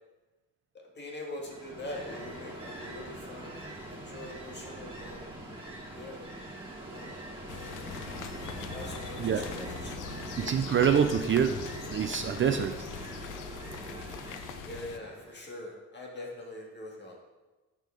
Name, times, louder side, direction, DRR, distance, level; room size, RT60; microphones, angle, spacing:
voice 1, 0.9-3.6 3.9-5.4 5.9-6.2 6.9-7.1 7.4-7.9 8.6-10.1 10.9-11.1 14.6-17.2, left 1 dB, 35° left, 0 dB, 1.7 m, -43 dB
Ocean, 1.3-15.4, right 1 dB, 15° right, 2.2 m, -42 dB
sound 1, 7.5-15.0, left 9 dB, 70° left, 0.5 m, -42 dB
voice 2, 10.4-11.7 11.9-12.9, right 8 dB, 40° right, 7 dB, 0.4 m, -26 dB
6.6 x 6.3 x 3.8 m, 1.2 s
cardioid pair, 95°, 32 cm